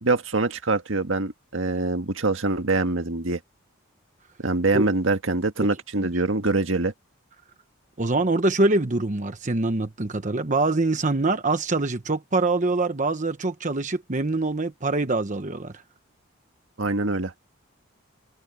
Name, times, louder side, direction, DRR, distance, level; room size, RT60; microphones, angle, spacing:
voice 1, 0.0-3.4 4.4-6.9 16.8-17.3, right 2 dB, 75° right, 1.8 m, -24 dB
voice 2, 8.0-15.7, right 2 dB, 40° right, 1.1 m, -24 dB
head